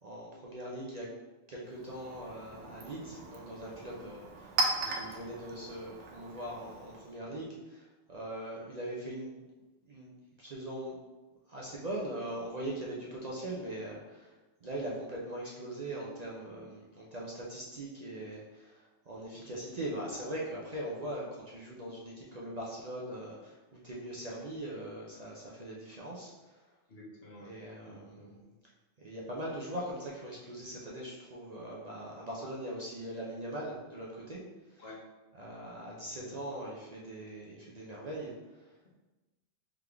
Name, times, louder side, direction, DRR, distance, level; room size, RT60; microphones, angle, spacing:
voice 1, 0.0-1.1 1.5-4.6 4.9-9.4 9.8-10.1 10.4-11.0 11.5-14.3 14.6-26.7 27.3-28.3 29.0-34.4 34.7-34.8 35.3-38.7, right 1 dB, 45° right, -5 dB, 0.6 m, -41 dB
Chink clink, 1.6-7.2, right 3 dB, 80° right, 1.0 m, -38 dB
voice 2, 26.9-27.5 27.8-28.4 34.8-35.0 36.2-36.4, left 1 dB, 60° left, -4 dB, 1.2 m, -51 dB
3.7 x 3.5 x 3.4 m, 1.2 s
omnidirectional pair, 1.2 m